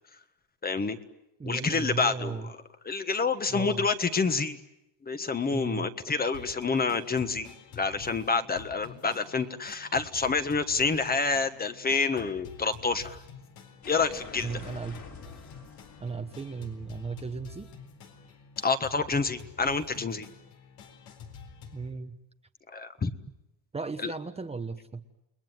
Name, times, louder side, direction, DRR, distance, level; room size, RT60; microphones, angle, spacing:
voice 1, 0.6-1.0 1.4-2.4 2.8-4.6 5.0-13.2 13.9-14.5 18.6-20.3 22.7-23.1 24.0-24.1, left 4 dB, 20° left, 9 dB, 1.4 m, -28 dB
voice 2, 1.4-2.5 3.5-3.9 5.5-5.9 14.4-15.2 16.0-17.7 21.7-22.2 23.7-25.0, right 4 dB, 15° right, 6 dB, 1.0 m, -36 dB
sound 1, 6.3-21.9, left 6 dB, 80° left, 4.3 m, -48 dB
sound 2, 13.8-18.6, left 5 dB, 45° left, 3.8 m, -49 dB
29.5 x 20.5 x 9.3 m, 0.88 s
cardioid pair, 130°, 41 cm